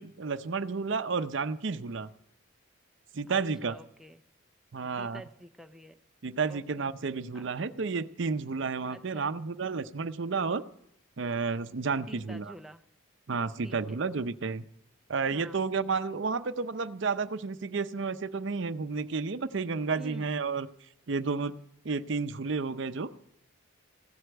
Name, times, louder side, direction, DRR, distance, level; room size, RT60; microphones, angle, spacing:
voice 1, 0.0-2.1 3.1-3.7 4.7-5.2 6.2-10.6 11.2-12.5 13.3-14.6 15.1-20.7 21.1-21.6 21.8-23.1, right 4 dB, 65° right, 12 dB, 0.6 m, -31 dB
voice 2, 3.3-4.2 5.0-6.0 6.5-6.9 7.3-7.5 8.9-9.3 12.1-12.8 13.6-14.0 15.3-15.6 20.0-20.3, right 1 dB, ahead, 6 dB, 0.4 m, -48 dB
15.5 x 8.0 x 7.8 m, 0.74 s
head